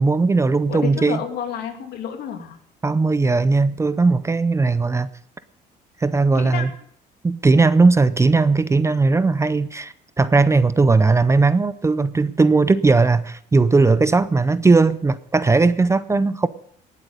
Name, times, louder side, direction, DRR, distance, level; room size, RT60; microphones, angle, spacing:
voice 1, 0.0-1.2 2.8-5.1 6.0-6.7 7.2-16.5, right 3 dB, 15° right, 15 dB, 0.5 m, -18 dB
voice 2, 0.7-2.6 6.3-6.7, left 8 dB, 70° left, 4 dB, 2.6 m, -30 dB
18.5 x 8.2 x 5.3 m, 0.65 s
cardioid pair, 110°, 17 cm